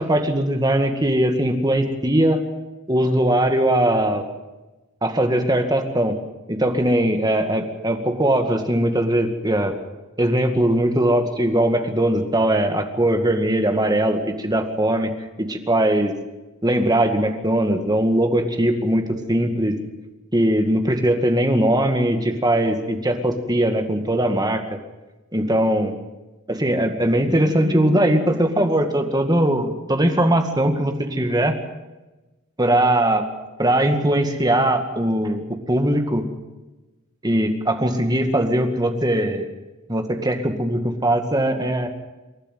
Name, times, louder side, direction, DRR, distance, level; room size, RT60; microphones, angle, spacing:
voice 1, 0.0-2.4 2.9-4.3 5.0-6.2 6.5-9.7 10.2-15.1 15.4-16.2 16.6-19.8 20.3-24.6 25.3-25.9 26.5-31.6 32.6-33.3 33.6-35.4 35.7-36.3 37.2-39.5 39.9-41.9, right 1 dB, 20° right, 5 dB, 2.1 m, -20 dB
27.5 x 12.0 x 9.3 m, 1.1 s
head